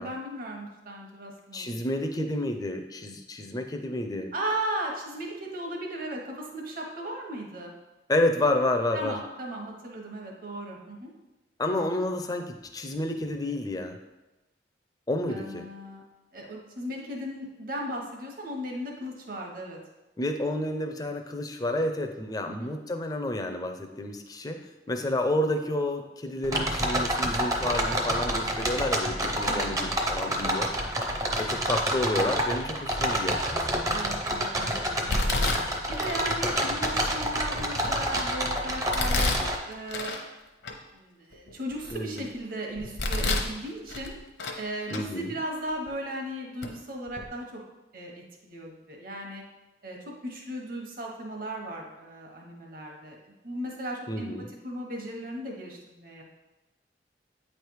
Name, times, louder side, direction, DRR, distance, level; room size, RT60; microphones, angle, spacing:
voice 1, 0.0-1.7 4.3-7.7 8.9-11.1 15.3-16.0 16.3-19.8 22.5-22.7 29.4-29.7 33.9-35.5 35.9-40.1 40.9-44.1 44.6-47.6 47.9-49.4 49.8-54.3 54.6-56.2, right 1 dB, 50° right, 0 dB, 1.2 m, -36 dB
voice 2, 1.5-4.3 8.1-9.2 11.6-14.0 15.1-15.7 20.2-30.7 31.0-33.4 41.9-42.2 44.9-45.3 54.1-54.5, left 1 dB, 20° left, 5 dB, 0.5 m, -30 dB
sound 1, 26.4-39.6, right 1 dB, 20° right, 0.6 m, -28 dB
Domestic sounds home sounds, 33.0-33.4 33.9-34.4 35.1-36.3 36.8-36.9 37.5-38.3 38.9-40.2 40.6-40.7 41.3-42.3 42.8-43.5 43.9-44.6 44.9-45.0 45.9-46.0 46.6-46.7 47.1-47.3, left 2 dB, 70° left, 0.8 m, -30 dB
8.7 x 3.3 x 4.7 m, 1.1 s
head